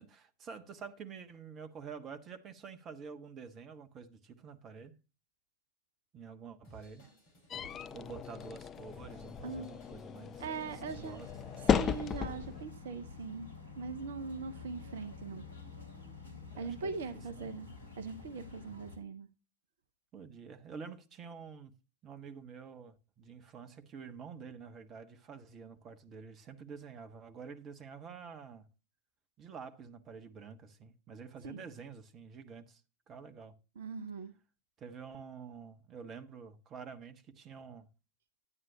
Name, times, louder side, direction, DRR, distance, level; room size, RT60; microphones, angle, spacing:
voice 1, 0.0-4.9 6.1-7.1 7.9-10.4 11.0-11.3 16.5-17.5 20.1-21.7 22.0-28.7 29.4-32.8 33.1-33.6 34.8-37.9, right 6 dB, 30° right, 1.2 m, -48 dB
Drum kit / Drum, 6.6-12.3, right 2 dB, 45° left, 5.1 m, -57 dB
sound 1, 7.5-12.6, left 8 dB, 25° left, 0.4 m, -35 dB
voice 2, 10.4-11.2 11.6-13.5 13.8-15.5 16.6-17.7 18.0-19.3 31.4-31.6 33.8-34.3, right 5 dB, 60° right, 0.8 m, -41 dB
sound 2, 10.6-19.0, left 4 dB, 70° left, 3.1 m, -49 dB
11.0 x 9.5 x 2.7 m
figure-of-eight pair, 90°, 0 cm